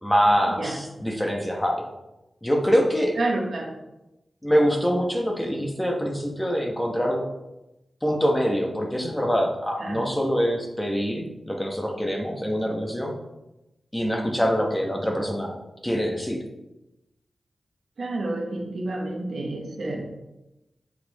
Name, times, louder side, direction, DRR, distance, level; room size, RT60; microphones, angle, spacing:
voice 1, 0.0-1.8 2.4-3.1 4.4-7.2 8.0-13.1 13.9-15.6 15.8-16.4, equal, 10° left, 0 dB, 1.3 m, -24 dB
voice 2, 3.2-3.7 9.8-10.1 18.0-20.0, right 2 dB, 75° right, -1 dB, 1.5 m, -29 dB
7.8 x 4.9 x 3.6 m, 0.96 s
wide cardioid pair, 85°, 0 cm